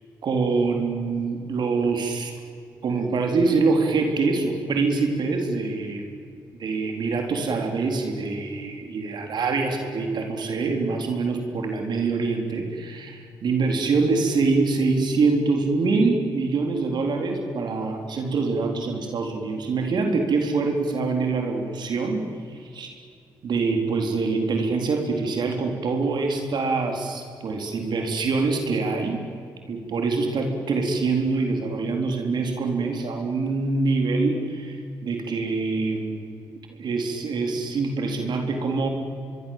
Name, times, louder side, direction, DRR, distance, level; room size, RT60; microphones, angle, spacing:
voice 1, 0.2-2.3 2.8-6.2 6.6-22.2 22.5-22.9 23.4-29.2 29.7-36.2 36.7-38.9, right 4 dB, 60° right, 3 dB, 4.1 m, -25 dB
25.0 x 22.5 x 7.6 m, 2.4 s
supercardioid pair, 60°, 8 cm